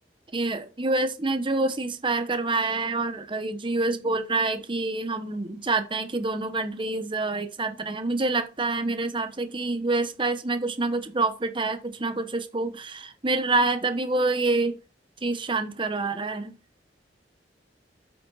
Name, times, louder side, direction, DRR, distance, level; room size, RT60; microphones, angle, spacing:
voice 1, 0.3-14.8 15.2-16.5, right 3 dB, 30° right, 1.0 m, -27 dB
8.5 x 5.9 x 4.1 m
head